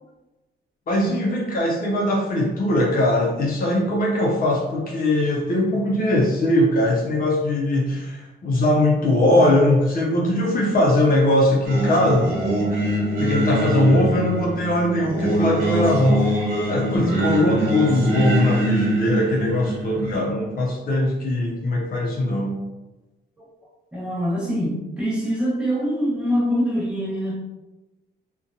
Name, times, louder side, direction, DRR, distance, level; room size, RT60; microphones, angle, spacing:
voice 1, 0.9-12.3 13.2-16.4 16.7-22.6, left 1 dB, 45° left, -2 dB, 0.5 m, -20 dB
Singing, 11.6-20.1, right 1 dB, 50° right, 1.2 m, -24 dB
voice 2, 23.9-27.3, equal, 5° right, -7 dB, 0.9 m, -24 dB
2.6 x 2.2 x 2.5 m, 1.1 s
cardioid pair, 90°, 20 cm